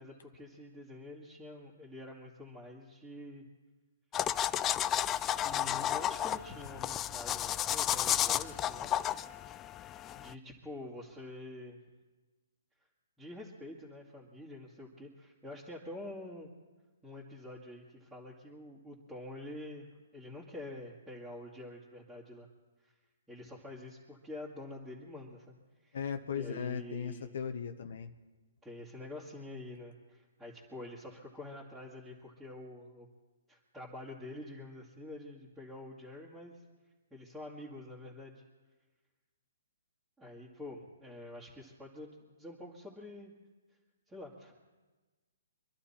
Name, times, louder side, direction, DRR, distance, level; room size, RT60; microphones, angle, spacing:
voice 1, 0.0-3.4 5.4-8.9 10.1-11.8 13.2-16.5 17.0-19.9 20.1-22.5 22.8-22.9 23.3-25.5 25.8-26.0 26.3-27.3 28.6-33.1 33.5-36.6 37.1-38.4 40.2-43.3 44.1-44.5, left 1 dB, 5° right, -6 dB, 2.0 m, -47 dB
sound 1, 4.1-10.3, left 11 dB, 20° left, 0.4 m, -32 dB
voice 2, 25.9-28.1, left 7 dB, 65° left, 7 dB, 0.9 m, -37 dB
25.0 x 12.0 x 4.3 m, 1.3 s
hypercardioid pair, 150°, 0 cm